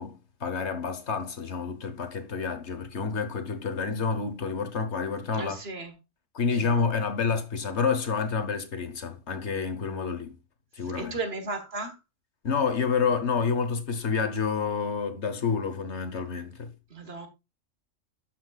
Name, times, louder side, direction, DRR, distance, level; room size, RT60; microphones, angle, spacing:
voice 1, 0.0-5.6 6.3-10.3 10.8-11.2 12.4-16.7, left 5 dB, 65° left, 1.4 m, -29 dB
voice 2, 5.3-5.9 6.6-6.8 10.9-11.9 16.9-17.3, right 3 dB, 55° right, 1.6 m, -35 dB
12.5 x 5.9 x 2.4 m
omnidirectional pair, 1.3 m